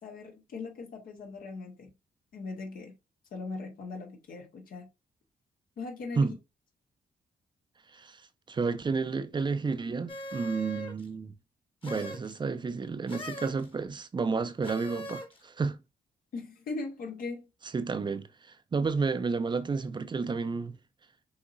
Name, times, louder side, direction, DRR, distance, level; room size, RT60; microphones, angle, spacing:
voice 1, 0.0-1.9 2.3-2.9 3.3-4.9 5.8-6.3 16.3-17.5, left 3 dB, 70° left, 1.2 m, -39 dB
voice 2, 7.9-11.3 11.8-15.8 17.7-20.8, right 4 dB, 30° right, 0.5 m, -31 dB
sound 1, 10.1-11.1 11.8-12.3 13.1-13.7 14.6-15.4, left 1 dB, 35° left, 1.3 m, -40 dB
6.1 x 2.8 x 2.5 m
cardioid pair, 85°, 15 cm